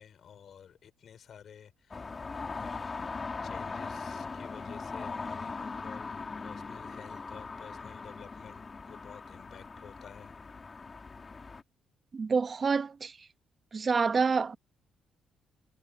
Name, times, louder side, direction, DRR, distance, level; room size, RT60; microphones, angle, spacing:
voice 1, 0.0-2.2 2.5-10.4, left 8 dB, 60° left, 4.9 m, -52 dB
sound 1, 1.9-11.6, left 4 dB, 30° left, 2.3 m, -40 dB
voice 2, 12.1-13.2 13.7-14.6, right 5 dB, 40° right, 1.1 m, -27 dB
cardioid pair, 90°, 0 cm